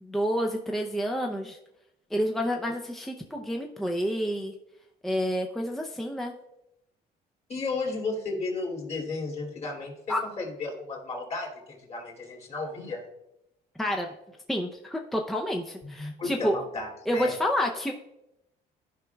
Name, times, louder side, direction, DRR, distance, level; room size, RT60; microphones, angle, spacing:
voice 1, 0.0-1.6 2.1-4.5 5.0-6.3 10.1-10.2 13.8-14.1 14.5-16.6 17.1-17.9, equal, ahead, 1 dB, 0.6 m, -29 dB
voice 2, 7.5-13.0 15.8-17.3, left 3 dB, 40° left, -1 dB, 2.6 m, -34 dB
14.0 x 5.0 x 2.3 m, 0.87 s
cardioid pair, 110°, 17 cm